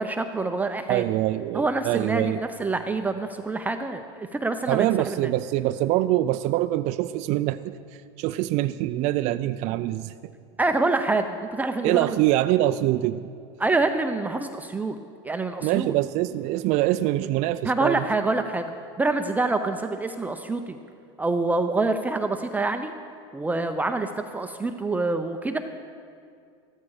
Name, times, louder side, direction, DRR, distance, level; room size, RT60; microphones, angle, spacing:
voice 1, 0.0-1.0 1.5-5.1 10.6-12.2 13.6-15.0 15.2-15.9 17.6-18.7 19.0-20.8 21.2-22.9 23.3-25.6, right 3 dB, 10° right, 6 dB, 0.6 m, -26 dB
voice 2, 0.9-2.4 4.7-10.1 11.8-13.3 15.6-18.1, right 15 dB, 50° right, 11 dB, 0.4 m, -24 dB
14.0 x 13.5 x 4.8 m, 2.3 s
supercardioid pair, 110°, 15 cm